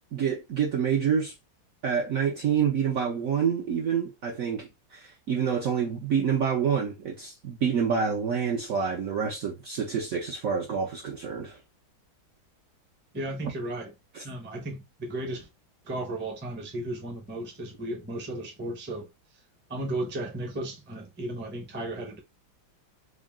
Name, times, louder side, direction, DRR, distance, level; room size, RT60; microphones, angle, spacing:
voice 1, 0.1-1.3 1.8-11.6 14.1-14.2, right 7 dB, 65° right, 0.8 m, -27 dB
voice 2, 13.1-13.9 14.2-15.5 15.8-19.1 19.7-22.2, right 1 dB, 15° right, 0.4 m, -34 dB
3.7 x 2.4 x 3.5 m
omnidirectional pair, 2.1 m